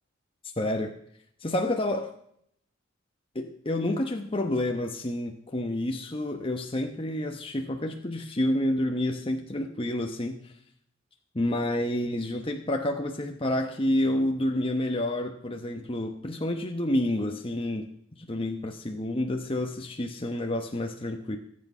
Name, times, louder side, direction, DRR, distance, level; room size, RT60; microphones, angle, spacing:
voice 1, 0.6-0.9 1.4-2.1 3.3-10.5 11.3-17.9 18.2-21.4, left 1 dB, 30° left, 3 dB, 1.1 m, -29 dB
24.0 x 8.6 x 5.6 m, 0.69 s
head